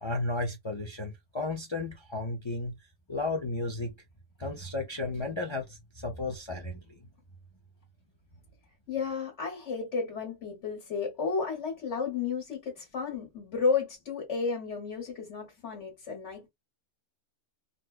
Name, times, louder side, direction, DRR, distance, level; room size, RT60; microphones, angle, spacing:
voice 1, 0.0-2.7 3.1-3.9 4.4-6.8, left 2 dB, 40° left, 0.4 m, -33 dB
voice 2, 8.9-16.5, left 5 dB, 65° left, 1.5 m, -32 dB
4.0 x 2.2 x 2.3 m
omnidirectional pair, 1.3 m